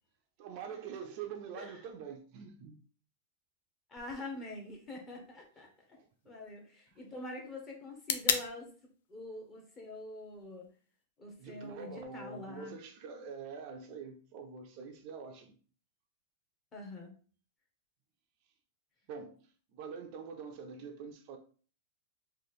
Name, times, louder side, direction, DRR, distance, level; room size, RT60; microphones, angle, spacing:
voice 1, 0.4-2.8 5.9-6.1 6.9-7.0 11.4-15.6 19.1-21.4, right 6 dB, 40° right, 0.4 m, -45 dB
voice 2, 3.9-5.7 6.2-8.7 9.1-10.7 11.2-12.8 16.7-17.1, left 2 dB, 20° left, 0.8 m, -45 dB
sound 1, 4.0-12.0, left 7 dB, 70° left, 0.4 m, -41 dB
3.1 x 2.4 x 4.1 m
supercardioid pair, 165°, 0 cm